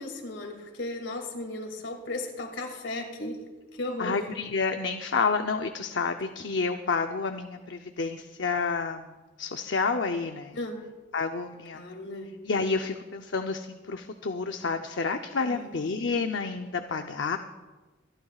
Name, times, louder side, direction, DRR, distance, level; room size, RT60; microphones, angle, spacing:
voice 1, 0.0-3.4 3.7-4.2 10.5-10.9 11.7-12.4 15.4-15.7, left 2 dB, 85° left, 2.5 m, -36 dB
voice 2, 4.0-9.1 9.4-10.6 11.1-11.8 12.5-17.4, left 4 dB, 70° left, 0.7 m, -29 dB
27.5 x 11.5 x 2.4 m
head